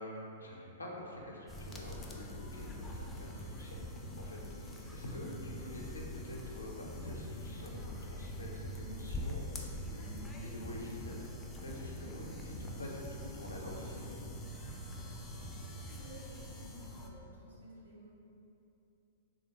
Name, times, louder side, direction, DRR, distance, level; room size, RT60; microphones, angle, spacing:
voice 1, 0.0-11.2 11.6-14.2, left 1 dB, 85° left, -2 dB, 0.5 m, -47 dB
sound 1, 1.5-17.1, left 1 dB, 15° left, 0.3 m, -44 dB
voice 2, 15.2-18.1, equal, 80° right, -6 dB, 0.9 m, -54 dB
3.1 x 2.4 x 2.9 m, 2.8 s
figure-of-eight pair, 110°, 0 cm